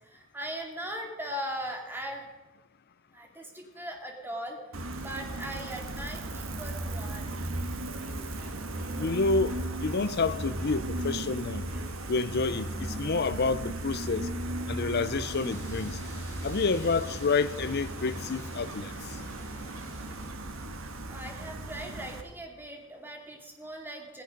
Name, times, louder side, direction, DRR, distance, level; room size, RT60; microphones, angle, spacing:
voice 1, 0.0-2.3 3.1-4.6 5.0-7.2 21.1-24.2, equal, 10° right, 2.5 m, -39 dB
Gull seagull, 4.7-22.2, right 1 dB, 85° right, 1.5 m, -36 dB
Wind instrument woodwind instrument, 8.0-14.1, left 1 dB, 55° right, 5.9 m, -52 dB
voice 2, 9.0-11.6 12.1-14.3 14.7-16.0 16.4-18.9, left 4 dB, 50° left, 0.6 m, -29 dB
sound 1, 15.1-20.3, left 1 dB, 15° left, 5.6 m, -50 dB
17.0 x 16.0 x 5.3 m
head